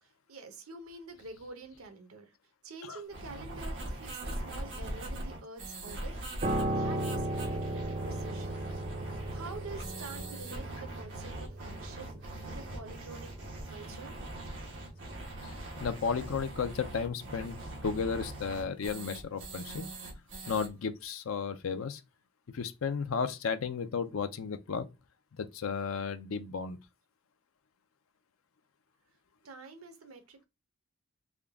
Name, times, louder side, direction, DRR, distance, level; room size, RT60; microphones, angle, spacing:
voice 1, 0.0-2.3 2.6-8.6 9.1-13.3 13.7-14.1 29.4-30.4, right 3 dB, 80° right, 0.8 m, -47 dB
sound 1, 3.1-20.7, right 1 dB, 60° right, 1.1 m, -41 dB
Piano, 6.4-15.8 16.1-16.3, right 1 dB, 40° right, 0.6 m, -37 dB
voice 2, 15.4-17.6 17.8-19.9 20.5-22.0 22.5-24.9 25.3-26.8, left 5 dB, 75° left, 0.5 m, -34 dB
3.6 x 2.2 x 3.5 m
head